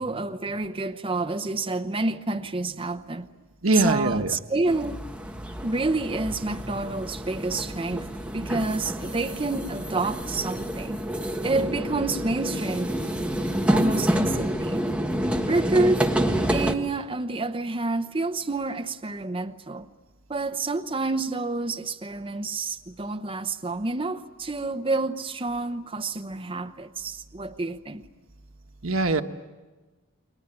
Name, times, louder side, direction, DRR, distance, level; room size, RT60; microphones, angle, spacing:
voice 1, 0.0-3.3 3.7-5.0 5.6-8.1 8.3-11.0 11.4-13.0 13.7-14.8 15.5-16.0 16.5-19.9 20.3-28.0, right 3 dB, 25° right, 0.8 m, -28 dB
voice 2, 3.6-4.3 28.8-29.2, right 2 dB, 90° right, 1.3 m, -22 dB
sound 1, 4.7-16.7, right 1 dB, 5° right, 1.5 m, -28 dB
30.0 x 22.5 x 8.9 m
head